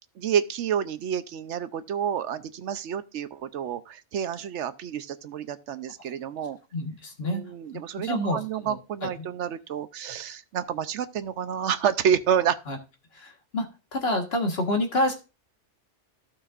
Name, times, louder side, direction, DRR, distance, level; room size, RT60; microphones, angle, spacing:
voice 1, 0.2-6.6 7.2-12.6, right 8 dB, 75° right, 0.9 m, -29 dB
voice 2, 6.7-7.4 8.0-8.4 8.6-8.8 12.7-12.8 13.2-13.7 13.9-15.1, left 1 dB, 55° left, 1.7 m, -27 dB
15.0 x 5.8 x 2.5 m
omnidirectional pair, 1.2 m